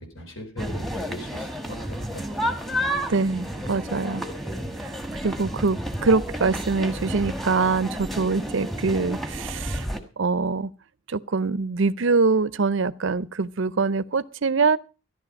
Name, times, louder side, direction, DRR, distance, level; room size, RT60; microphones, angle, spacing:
voice 1, 0.0-2.9, left 1 dB, 65° left, 4.3 m, -40 dB
sound 1, 0.6-10.0, equal, ahead, 1.3 m, -31 dB
voice 2, 3.1-4.2 4.8-4.9 5.2-9.9 10.2-10.7 11.1-14.8, right 4 dB, 60° right, 0.6 m, -24 dB
14.0 x 11.5 x 5.3 m
head